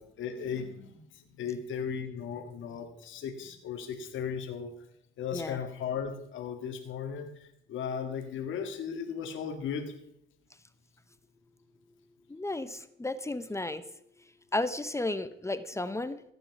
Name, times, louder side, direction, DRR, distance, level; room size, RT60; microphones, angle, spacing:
voice 1, 0.0-4.7 5.2-9.9, left 7 dB, 80° left, 4 dB, 1.9 m, -36 dB
voice 2, 12.3-13.8 14.5-16.3, left 2 dB, 15° left, 12 dB, 0.8 m, -33 dB
15.0 x 9.1 x 6.0 m, 0.74 s
cardioid pair, 90°, 20 cm